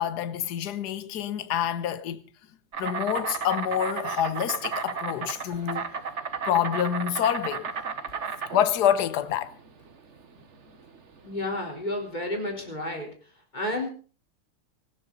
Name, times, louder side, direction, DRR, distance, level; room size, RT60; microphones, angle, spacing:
voice 1, 0.0-2.2 2.8-5.9 6.5-7.7 8.5-9.5, left 10 dB, 55° left, 1.5 m, -27 dB
Insect, 2.7-12.7, right 5 dB, 40° right, 1.4 m, -34 dB
voice 2, 11.2-13.1 13.5-13.9, left 1 dB, 20° left, 4.1 m, -31 dB
18.5 x 15.5 x 4.1 m
omnidirectional pair, 2.4 m